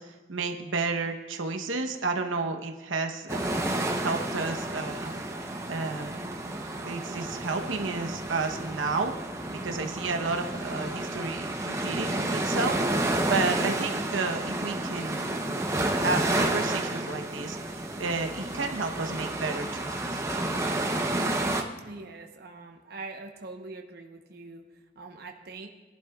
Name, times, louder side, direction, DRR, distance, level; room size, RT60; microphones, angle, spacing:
voice 1, 0.0-3.5 4.0-5.1 5.7-6.2 6.8-9.2 9.5-15.2 15.9-20.2, right 4 dB, 85° right, 4 dB, 1.0 m, -32 dB
sound 1, 3.3-21.6, right 1 dB, 15° right, 0.7 m, -30 dB
voice 2, 21.8-25.7, right 3 dB, 55° right, 3 dB, 0.9 m, -43 dB
21.0 x 11.5 x 2.4 m, 1.2 s
head